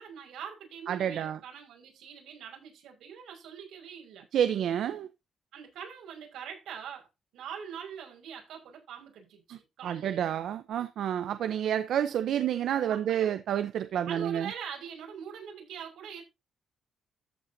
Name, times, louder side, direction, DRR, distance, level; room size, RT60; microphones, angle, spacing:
voice 1, 0.0-4.2 5.5-7.1 7.3-10.2 12.9-13.3 14.1-16.2, right 8 dB, 90° right, 5.6 m, -43 dB
voice 2, 0.9-1.4 4.3-5.1 9.8-14.5, right 9 dB, 70° right, 0.8 m, -29 dB
13.5 x 8.1 x 2.8 m
cardioid pair, 145°, 0 cm